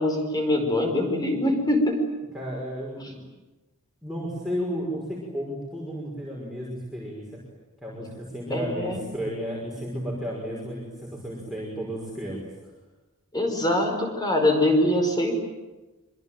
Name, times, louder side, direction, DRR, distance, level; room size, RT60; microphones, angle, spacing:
voice 1, 0.0-2.0 8.5-9.0 13.3-15.3, left 1 dB, 15° left, 3 dB, 5.1 m, -23 dB
voice 2, 2.3-3.2 4.0-7.3 7.8-12.4, equal, ahead, -4 dB, 5.6 m, -33 dB
26.5 x 24.0 x 9.2 m, 1.1 s
head